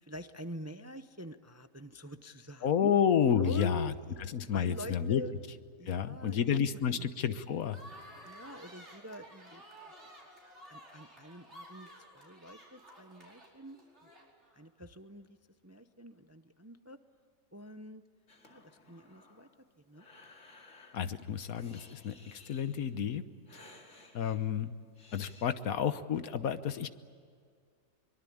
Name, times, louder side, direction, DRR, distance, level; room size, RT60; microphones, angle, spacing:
voice 1, 0.0-2.9 3.4-4.2 4.5-5.3 5.8-6.6 6.9-7.1 8.2-9.6 10.7-14.1 14.5-15.4 15.6-17.0 17.5-18.0 18.5-19.5 19.8-20.1, equal, 15° right, 10 dB, 0.5 m, -46 dB
voice 2, 2.6-3.9 4.2-5.2 5.8-7.8 20.9-23.2 24.1-24.8 25.1-26.9, left 8 dB, 75° left, 12 dB, 1.4 m, -30 dB
sound 1, 7.7-14.6, right 1 dB, 50° right, 5.2 m, -53 dB
Breathing, 18.3-25.5, left 3 dB, 55° left, 2.6 m, -58 dB
24.0 x 23.0 x 8.6 m, 2.1 s
omnidirectional pair, 1.5 m